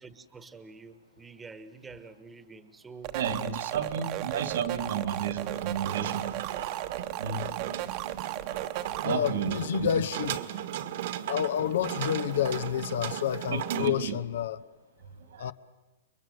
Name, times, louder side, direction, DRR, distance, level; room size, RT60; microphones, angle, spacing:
voice 1, 0.0-3.2 3.7-4.1 4.6-4.7, right 4 dB, 10° right, 1.3 m, -48 dB
sound 1, 3.0-9.0, right 15 dB, 35° right, 1.1 m, -35 dB
voice 2, 3.1-6.7 7.2-7.6 9.0-10.0 13.5-14.2 15.3-15.5, right 7 dB, 75° right, 2.6 m, -32 dB
sound 2, 5.4-13.9, right 11 dB, 60° right, 1.6 m, -37 dB
voice 3, 9.0-10.4 11.3-14.6 15.4-15.5, left 10 dB, 70° left, 1.0 m, -29 dB
30.0 x 22.5 x 8.0 m
hypercardioid pair, 155°, 0 cm